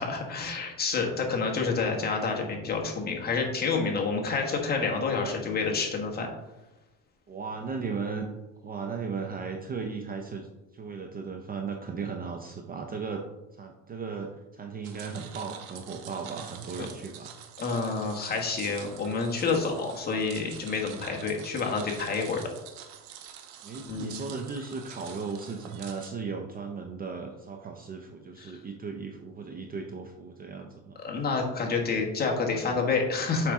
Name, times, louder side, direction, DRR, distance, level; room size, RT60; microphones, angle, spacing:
voice 1, 0.0-6.3 17.6-22.4 23.9-24.2 28.4-28.6 31.0-33.5, left 4 dB, 25° left, 1 dB, 1.3 m, -28 dB
voice 2, 7.3-8.3 8.6-10.5 10.7-13.2 13.5-17.3 23.6-31.0, right 5 dB, 25° right, 4 dB, 0.5 m, -36 dB
sound 1, 14.8-26.1, right 9 dB, 85° right, 1.1 m, -46 dB
7.1 x 5.3 x 3.5 m, 1.0 s
cardioid pair, 140°, 37 cm